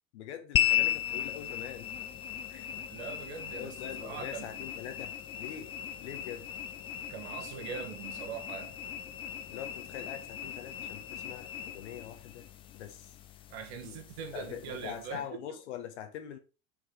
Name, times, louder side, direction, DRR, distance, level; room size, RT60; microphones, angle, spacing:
voice 1, 0.1-1.9 2.5-2.7 3.6-5.7 6.0-6.5 9.5-12.5 12.7-13.1 13.8-14.0 14.3-16.4, left 10 dB, 55° left, 1.7 m, -43 dB
sound 1, 0.5-15.2, left 11 dB, 15° left, 0.4 m, -36 dB
voice 2, 2.9-4.5 7.1-8.8 13.5-15.4, right 6 dB, 50° right, 1.6 m, -42 dB
5.9 x 5.3 x 5.1 m
figure-of-eight pair, 85°, 41 cm